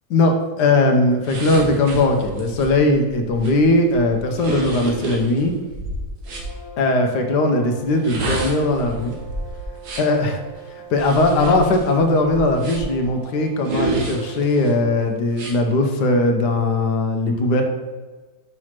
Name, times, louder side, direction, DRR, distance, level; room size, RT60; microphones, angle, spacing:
voice 1, 0.1-5.5 6.8-9.1 10.0-10.4 10.9-17.6, left 2 dB, 75° left, 4 dB, 1.3 m, -19 dB
sound 1, 1.2-6.5 7.9-10.2 10.9-13.0 13.6-14.7 15.3-15.6, right 2 dB, 70° right, 1.6 m, -30 dB
sound 2, 6.3-15.2, right 5 dB, 45° left, 1.0 m, -42 dB
6.1 x 3.1 x 5.7 m, 1.3 s
omnidirectional pair, 1.8 m